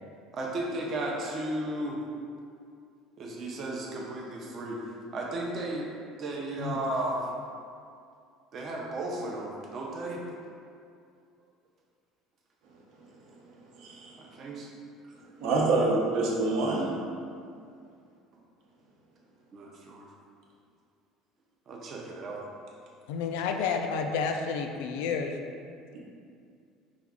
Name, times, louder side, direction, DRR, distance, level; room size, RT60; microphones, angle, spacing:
voice 1, 0.3-2.0 3.2-4.8 5.1-5.9 6.2-7.2 8.5-10.2 14.2-14.7 19.5-20.1 21.7-22.4, right 2 dB, 35° right, -2 dB, 0.6 m, -34 dB
voice 2, 13.8-14.2 15.4-16.9, right 2 dB, 60° right, -3 dB, 0.8 m, -26 dB
voice 3, 23.1-25.4, left 5 dB, 90° left, 4 dB, 0.4 m, -30 dB
5.1 x 2.4 x 3.6 m, 2.3 s
cardioid pair, 160°, 0 cm